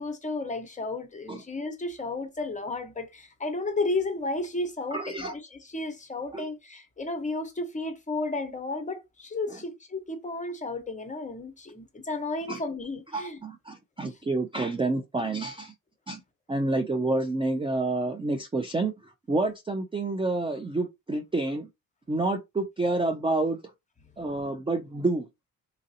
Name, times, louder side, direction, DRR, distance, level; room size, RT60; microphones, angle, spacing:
voice 1, 0.0-13.4, left 2 dB, 20° left, 0.9 m, -33 dB
voice 2, 4.9-5.3 6.3-6.5 12.5-12.6 13.1-15.7 16.1-16.2 16.5-18.9 19.3-21.7 22.1-23.6 24.2-25.3, right 2 dB, 15° right, 0.4 m, -28 dB
4.0 x 2.6 x 2.7 m
cardioid pair, 115°, 34 cm